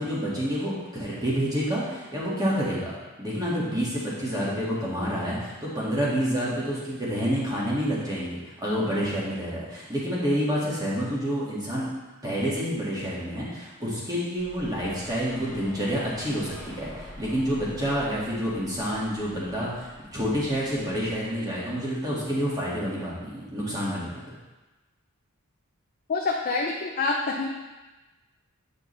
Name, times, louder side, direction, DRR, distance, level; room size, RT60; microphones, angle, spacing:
voice 1, 0.0-11.9 12.2-24.4, equal, 15° right, -7 dB, 1.9 m, -28 dB
sound 1, 14.4-21.5, left 1 dB, ahead, 1.4 m, -46 dB
voice 2, 26.1-27.5, left 3 dB, 40° left, -1 dB, 0.6 m, -26 dB
8.7 x 5.2 x 3.3 m, 1.1 s
head